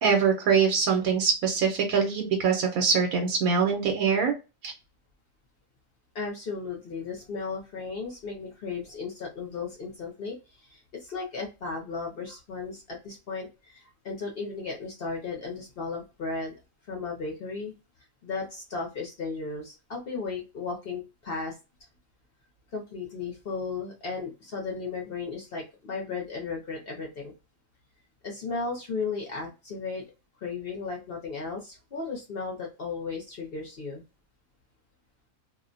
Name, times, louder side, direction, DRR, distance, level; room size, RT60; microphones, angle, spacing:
voice 1, 0.0-4.3 4.6-4.7, right 6 dB, 85° right, 3 dB, 1.1 m, -23 dB
voice 2, 6.1-16.6 16.9-17.7 18.2-21.5 22.7-27.3 28.2-30.0 30.4-34.0, left 4 dB, 55° left, 0 dB, 0.7 m, -35 dB
2.4 x 2.1 x 2.5 m, 0.28 s
omnidirectional pair, 1.5 m